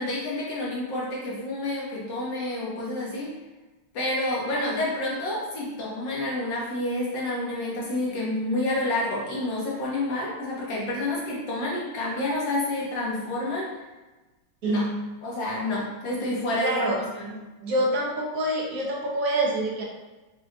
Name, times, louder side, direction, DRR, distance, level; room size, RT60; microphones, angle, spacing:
voice 1, 0.0-3.3 3.9-13.7 14.6-14.9 15.2-17.3, left 1 dB, 65° left, -6 dB, 1.8 m, -29 dB
voice 2, 14.6-15.0 16.6-17.0 17.6-19.8, right 1 dB, 55° right, -3 dB, 1.0 m, -26 dB
6.0 x 3.0 x 2.3 m, 1.1 s
omnidirectional pair, 2.2 m